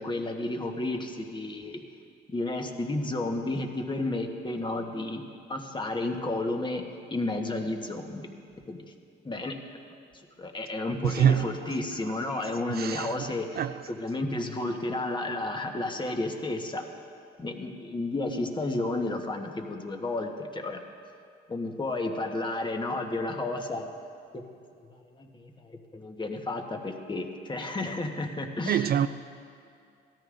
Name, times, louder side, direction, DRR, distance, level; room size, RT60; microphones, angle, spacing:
voice 1, 0.0-1.8 2.3-5.2 5.5-6.8 7.1-8.3 8.7-8.8 9.2-9.8 10.4-16.8 17.4-20.8 21.5-23.9 24.3-24.4 24.9-28.9, left 2 dB, 25° left, 1.2 m, -32 dB
voice 2, 11.0-11.7 12.0-12.4 12.7-13.8 28.7-29.1, right 9 dB, 50° right, 0.4 m, -27 dB
17.5 x 13.5 x 2.6 m
cardioid pair, 90°, 20 cm